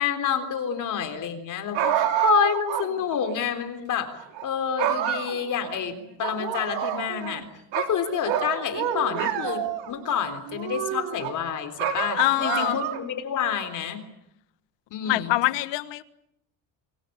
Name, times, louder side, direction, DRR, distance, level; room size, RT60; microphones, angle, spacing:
voice 1, 0.0-4.1 4.4-5.9 6.2-7.4 7.7-14.0 14.9-15.3, left 8 dB, 45° left, 8 dB, 3.7 m, -28 dB
sound 1, 1.7-2.9 3.2-3.3 4.2-4.5 4.8-5.8 6.2-7.4 7.7-9.9 10.5-11.3 11.8-13.1, right 10 dB, 75° right, 3.6 m, -27 dB
voice 2, 12.1-12.8 15.1-16.0, left 17 dB, 75° left, 13 dB, 1.6 m, -24 dB
27.5 x 23.5 x 8.6 m, 0.78 s
cardioid pair, 170°, 44 cm